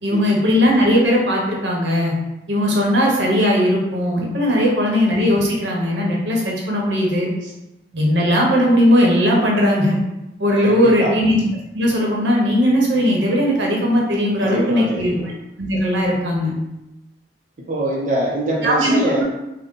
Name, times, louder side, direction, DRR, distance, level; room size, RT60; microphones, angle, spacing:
voice 1, 0.0-2.1 2.5-7.3 7.9-10.0 10.4-11.4 11.7-15.1 15.6-16.5 18.6-19.2, equal, 85° right, -2 dB, 1.0 m, -18 dB
voice 2, 10.6-11.2 14.4-15.3 17.6-19.2, right 1 dB, 45° right, -4 dB, 0.5 m, -24 dB
3.8 x 2.1 x 3.7 m, 0.92 s
head